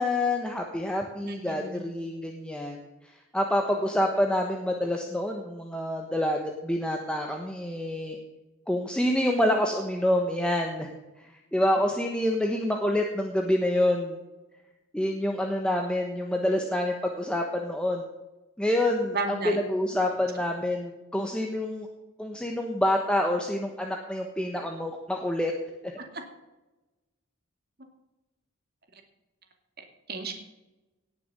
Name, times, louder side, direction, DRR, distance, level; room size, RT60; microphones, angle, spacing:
voice 1, 0.0-2.8 3.3-8.2 8.7-10.9 11.2-14.2 14.9-18.0 18.6-19.1 19.7-21.9 22.2-25.5 25.8-25.9, left 1 dB, 5° left, 1 dB, 1.3 m, -27 dB
voice 2, 1.2-1.8 19.1-19.6 26.1-26.2 28.9-29.0 29.8-30.4, right 3 dB, 50° right, 4 dB, 2.4 m, -34 dB
18.5 x 7.0 x 6.9 m, 1.0 s
head